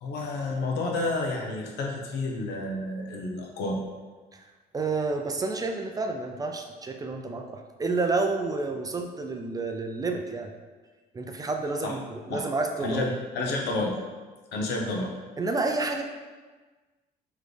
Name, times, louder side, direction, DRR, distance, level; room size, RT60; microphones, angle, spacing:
voice 1, 0.0-3.8 11.8-11.9 12.3-12.5 12.8-14.0 14.5-15.1, left 2 dB, 80° left, 0 dB, 0.8 m, -30 dB
voice 2, 4.7-10.5 11.1-13.1 15.4-16.0, right 3 dB, 20° right, 4 dB, 0.4 m, -29 dB
4.0 x 3.1 x 3.3 m, 1.4 s
cardioid pair, 110°, 17 cm